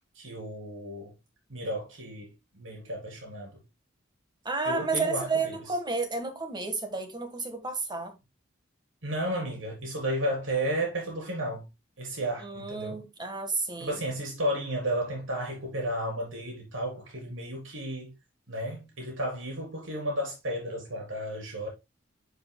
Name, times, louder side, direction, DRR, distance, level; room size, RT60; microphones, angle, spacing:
voice 1, 0.2-1.1 1.5-3.6 4.7-5.6 9.0-11.7 12.0-13.0 13.8-18.1 18.5-21.7, right 1 dB, 70° right, 3.7 m, -33 dB
voice 2, 4.4-8.1 12.4-14.0, right 3 dB, 20° right, 1.5 m, -31 dB
11.0 x 5.3 x 2.2 m
head